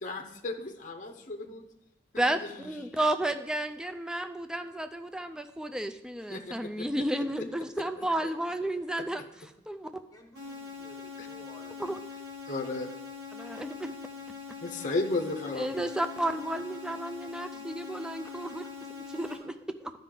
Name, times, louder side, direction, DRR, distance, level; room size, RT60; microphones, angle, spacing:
voice 1, 0.0-1.6 2.1-2.7 6.3-6.9 8.0-8.3 9.0-9.1 11.2-11.3 12.5-12.9 13.5-13.6 14.6-15.9, left 2 dB, 45° left, 4 dB, 0.7 m, -35 dB
voice 2, 2.2-9.2 9.7-9.9 11.8-12.0 13.3-13.9 15.6-18.6 18.9-19.9, right 1 dB, 5° right, 8 dB, 0.3 m, -32 dB
voice 3, 10.1-12.0 17.9-18.7, left 2 dB, 20° left, 3 dB, 0.9 m, -54 dB
sound 1, 10.3-19.3, left 5 dB, 70° right, 2.6 m, -43 dB
12.0 x 5.3 x 3.8 m, 0.87 s
head